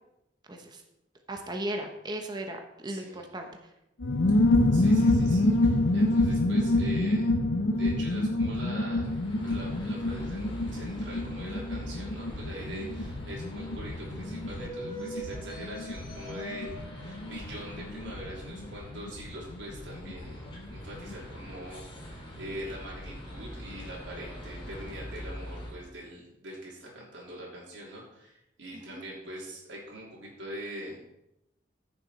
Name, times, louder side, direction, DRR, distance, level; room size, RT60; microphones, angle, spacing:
voice 1, 0.5-0.8 1.3-3.5 28.9-29.0, right 1 dB, 25° right, 3 dB, 1.1 m, -36 dB
voice 2, 2.9-3.2 4.3-4.4 4.7-7.3 7.6-9.1 9.4-31.0, equal, 75° right, -5 dB, 3.3 m, -43 dB
sound 1, 4.0-20.3 20.5-20.6 20.9-21.3, left 2 dB, 80° left, 0.8 m, -27 dB
sound 2, 9.0-25.7, equal, 30° left, 2.9 m, -42 dB
15.0 x 6.9 x 4.3 m, 0.86 s
head